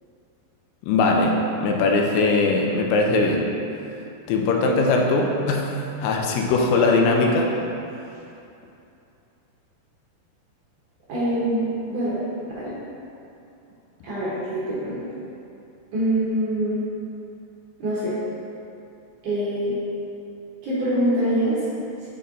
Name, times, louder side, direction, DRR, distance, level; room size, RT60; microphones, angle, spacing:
voice 1, 0.8-3.5 4.3-7.5, left 3 dB, 80° left, 1 dB, 2.4 m, -20 dB
voice 2, 11.1-12.2 12.6-12.8 14.0-15.0 15.9-16.8 17.8-18.1 19.2-19.7 20.6-21.6, right 1 dB, 65° right, -9 dB, 2.1 m, -24 dB
6.7 x 4.4 x 3.7 m, 2.7 s
omnidirectional pair, 4.9 m